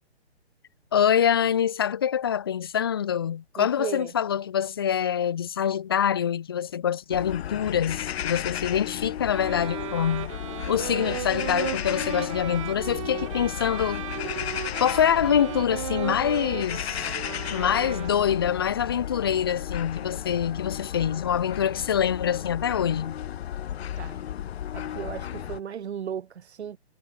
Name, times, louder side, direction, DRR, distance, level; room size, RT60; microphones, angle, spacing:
voice 1, 0.9-10.3 10.7-14.0 14.8-17.1 17.5-23.2, left 9 dB, 25° left, 0.4 m, -25 dB
voice 2, 3.6-4.1 24.0-24.2 24.7-26.8, right 8 dB, 85° right, 1.0 m, -35 dB
sound 1, 7.1-25.6, left 10 dB, 70° left, 0.6 m, -34 dB
sound 2, 9.3-18.5, right 12 dB, 30° right, 0.6 m, -36 dB
hypercardioid pair, 155°, 32 cm